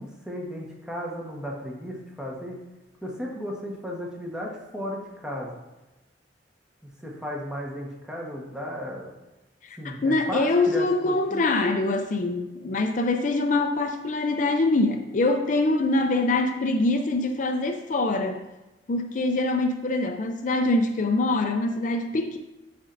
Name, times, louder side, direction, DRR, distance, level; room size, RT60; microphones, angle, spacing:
voice 1, 0.0-2.6 3.0-5.5 7.0-9.1 9.8-11.4, equal, 5° right, -2 dB, 1.2 m, -35 dB
voice 2, 9.6-18.5 18.9-22.4, left 2 dB, 45° left, 5 dB, 0.5 m, -24 dB
12.0 x 4.3 x 2.6 m, 1.1 s
head